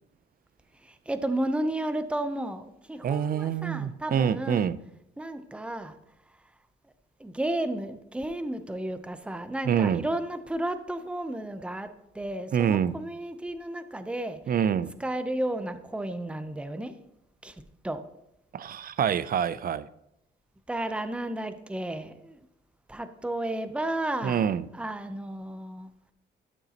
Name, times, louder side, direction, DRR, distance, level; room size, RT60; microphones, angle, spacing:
voice 1, 0.8-4.7 5.2-6.0 7.2-14.5 15.0-16.9 17.4-17.6 17.8-18.1 20.7-22.5 22.9-25.9, right 1 dB, 5° right, 0.7 m, -33 dB
voice 2, 3.0-4.8 9.7-10.0 12.5-13.0 14.5-14.9 18.5-19.9 24.2-24.6, right 8 dB, 50° right, 0.5 m, -26 dB
13.0 x 6.7 x 2.9 m
cardioid pair, 90°, 20 cm